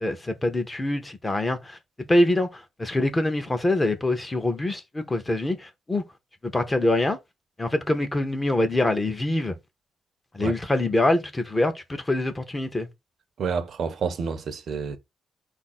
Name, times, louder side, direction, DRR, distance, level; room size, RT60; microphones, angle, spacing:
voice 1, 0.0-1.8 2.1-6.0 6.4-7.2 7.6-9.5 10.3-12.9, left 1 dB, 15° left, 0.6 m, -24 dB
voice 2, 13.4-15.0, right 5 dB, 50° right, 0.6 m, -29 dB
4.6 x 2.4 x 4.1 m
wide cardioid pair, 180°, 0 cm